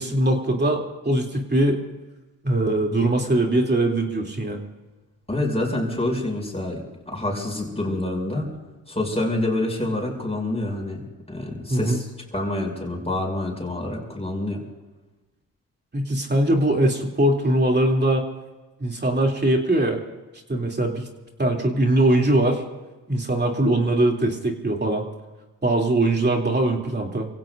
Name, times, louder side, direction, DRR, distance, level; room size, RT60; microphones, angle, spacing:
voice 1, 0.0-1.8 2.4-4.6 11.7-12.0 15.9-18.2 18.8-20.0 20.5-21.1 21.4-22.6 23.1-25.1 25.6-27.3, right 1 dB, 30° right, 1 dB, 3.0 m, -21 dB
voice 2, 5.3-8.5 8.9-11.0 11.3-12.1 12.3-14.6, left 1 dB, 15° left, 0 dB, 6.3 m, -27 dB
29.5 x 16.5 x 2.6 m, 1.2 s
cardioid pair, 70°, 36 cm